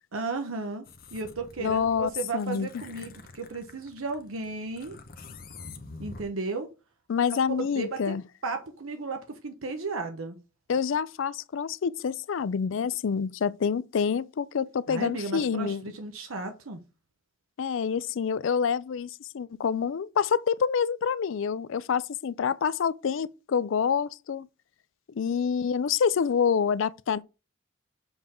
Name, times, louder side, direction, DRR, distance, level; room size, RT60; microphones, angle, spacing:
voice 1, 0.1-0.8 1.1-5.0 6.0-6.7 7.6-8.1 8.4-10.4 14.9-16.8, right 3 dB, 80° right, 0.9 m, -34 dB
sound 1, 0.9-6.2, left 3 dB, 45° left, 0.9 m, -46 dB
voice 2, 1.6-2.8 7.1-8.2 10.7-15.8 17.6-24.5 25.2-27.2, left 6 dB, 65° left, 0.4 m, -27 dB
7.1 x 3.7 x 4.3 m
head